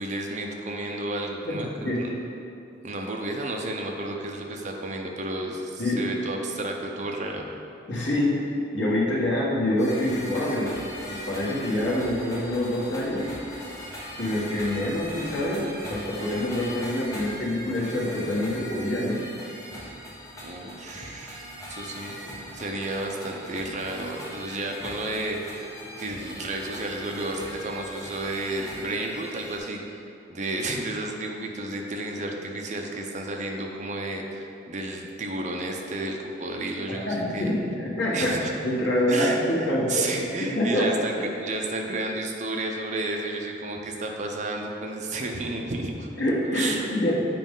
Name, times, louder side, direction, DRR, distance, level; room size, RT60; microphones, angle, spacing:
voice 1, 0.0-2.1 2.8-7.5 20.4-21.4 21.7-22.1 22.5-25.6 26.0-29.8 30.3-37.5 38.1-38.6 39.1-46.1 46.5-46.9, right 2 dB, 40° right, 1 dB, 0.6 m, -32 dB
voice 2, 1.4-2.1 5.8-6.0 7.9-8.4 8.7-10.8 11.1-13.3 14.2-19.2 36.9-38.3 38.6-40.1 40.4-40.9 46.2-47.2, left 1 dB, 90° left, -5 dB, 1.6 m, -26 dB
sound 1, 9.8-29.6, equal, 20° left, 1.2 m, -40 dB
7.6 x 5.0 x 3.8 m, 2.7 s
head